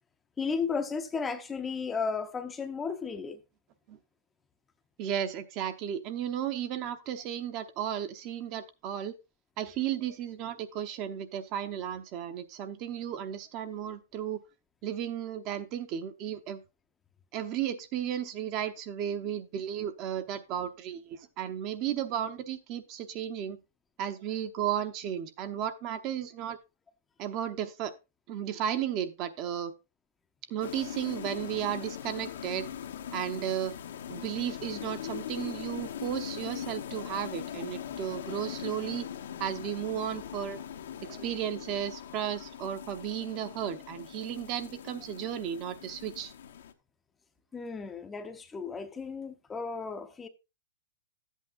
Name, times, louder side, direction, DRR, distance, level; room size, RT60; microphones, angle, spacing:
voice 1, 0.4-3.4 47.5-50.3, left 5 dB, 10° left, 0.6 m, -34 dB
voice 2, 5.0-9.2 9.6-14.4 14.8-16.6 17.3-23.6 24.0-26.6 27.2-27.9 28.3-29.7 30.5-32.7 33.1-33.7 34.1-39.1 39.4-40.6 41.0-46.3, right 10 dB, 35° right, 0.7 m, -34 dB
sound 1, 30.6-46.7, left 9 dB, 75° left, 1.0 m, -41 dB
12.5 x 8.3 x 2.5 m
hypercardioid pair, 150°, 0 cm